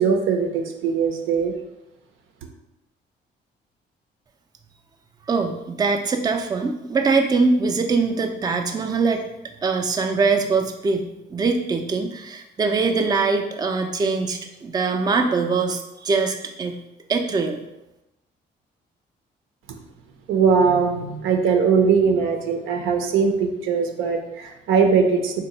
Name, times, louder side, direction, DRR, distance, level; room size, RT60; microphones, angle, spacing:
voice 1, 0.0-1.5 20.3-25.4, right 5 dB, 85° right, 4 dB, 0.6 m, -20 dB
voice 2, 5.3-9.2 9.6-16.8 17.1-17.6, right 4 dB, 20° right, 4 dB, 0.4 m, -22 dB
3.8 x 2.2 x 4.0 m, 0.92 s
cardioid pair, 90°, 20 cm